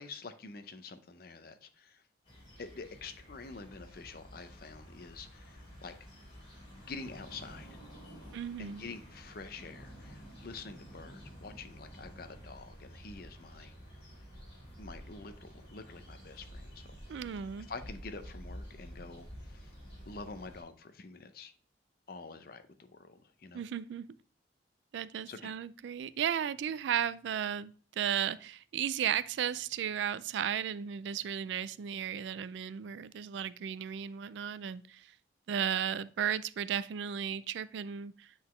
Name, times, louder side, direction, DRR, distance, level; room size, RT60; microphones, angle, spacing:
voice 1, 0.0-2.0 2.6-6.0 6.8-7.8 8.6-13.7 14.8-17.0 17.7-19.7 20.0-21.5 22.1-22.6 22.9-23.6 25.3-25.5, left 4 dB, 50° left, 9 dB, 0.6 m, -47 dB
sound 1, 2.3-20.6, equal, 35° left, 2.9 m, -50 dB
voice 2, 8.3-8.9 17.1-17.7 23.5-24.1 24.9-35.1 35.5-38.3, right 9 dB, 75° right, 17 dB, 0.3 m, -35 dB
8.0 x 3.9 x 3.1 m, 0.40 s
head